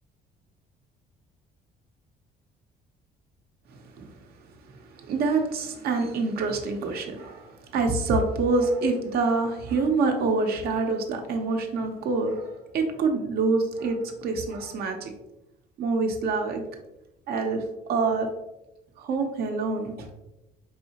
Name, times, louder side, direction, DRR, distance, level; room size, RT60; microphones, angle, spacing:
voice 1, 3.7-4.1 4.9-15.1 15.8-16.6 17.3-18.3 19.0-20.1, right 3 dB, 65° right, 4 dB, 0.7 m, -26 dB
4.8 x 2.7 x 2.8 m, 0.93 s
cardioid pair, 110°, 17 cm